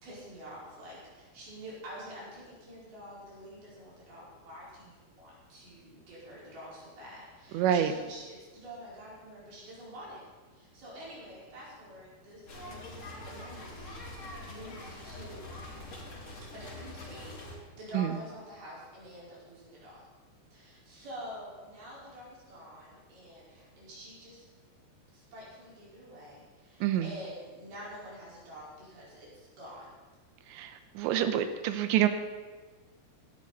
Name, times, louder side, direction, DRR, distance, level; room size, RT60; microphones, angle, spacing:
voice 1, 0.0-10.2 10.5-15.6 16.5-17.3 17.7-20.0 20.5-24.4 25.1-29.9, equal, 60° right, -7 dB, 6.7 m, -47 dB
voice 2, 7.5-7.9 17.9-18.1 26.8-27.1 30.5-32.1, right 10 dB, 85° right, 9 dB, 3.2 m, -27 dB
sound 1, 12.5-17.5, left 1 dB, 40° left, 3.9 m, -44 dB
18.0 x 13.0 x 4.2 m, 1.3 s
omnidirectional pair, 5.1 m